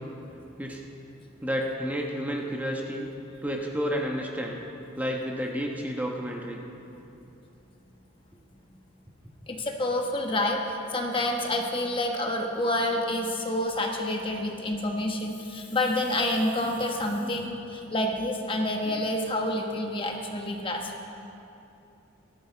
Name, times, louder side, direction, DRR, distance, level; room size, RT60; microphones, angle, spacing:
voice 1, 1.4-3.1 3.4-4.6 5.0-6.6 16.6-16.7 17.2-17.4, equal, 10° right, 0 dB, 1.0 m, -31 dB
voice 2, 9.5-20.9, left 1 dB, 25° left, 2 dB, 1.1 m, -28 dB
18.5 x 13.0 x 4.5 m, 2.8 s
head